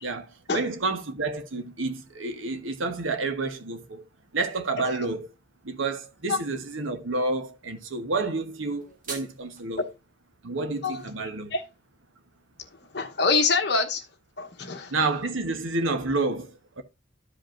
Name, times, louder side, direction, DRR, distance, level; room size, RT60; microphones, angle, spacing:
voice 1, 0.0-4.0 4.3-5.3 5.6-9.9 10.4-11.5 14.9-16.8, right 3 dB, 80° right, 1.2 m, -29 dB
sound 1, 8.6-9.6, right 3 dB, 40° right, 2.0 m, -41 dB
voice 2, 12.9-14.0 14.4-14.9, left 4 dB, 55° left, 1.1 m, -25 dB
13.5 x 5.1 x 2.6 m
head